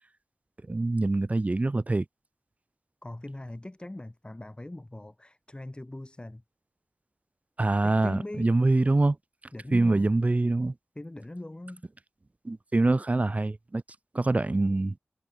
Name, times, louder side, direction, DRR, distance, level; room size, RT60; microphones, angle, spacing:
voice 1, 0.7-2.0 7.6-9.2 9.7-10.7 12.4-13.8 14.1-15.0, right 2 dB, 35° right, 0.7 m, -24 dB
voice 2, 3.0-6.4 7.8-8.6 9.5-10.1 10.9-11.8, left 1 dB, 25° left, 5.0 m, -40 dB
wide cardioid pair, 55°, 4 cm